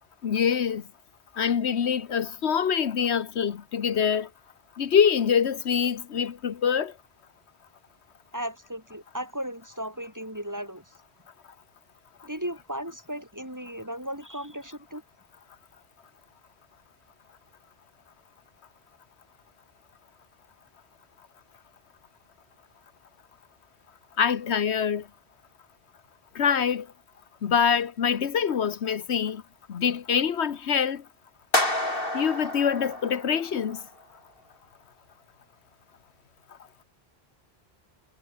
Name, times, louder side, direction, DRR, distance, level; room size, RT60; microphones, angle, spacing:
voice 1, 0.2-0.8 1.4-4.3 4.8-6.9 24.2-25.0 26.3-26.9 27.4-29.4 29.7-31.0 32.1-33.8, left 7 dB, 80° left, 1.3 m, -25 dB
voice 2, 8.3-10.8 12.2-15.0, equal, 15° right, 5.0 m, -36 dB
sound 1, 31.5-33.8, left 1 dB, 55° left, 7.2 m, -29 dB
omnidirectional pair, 1.1 m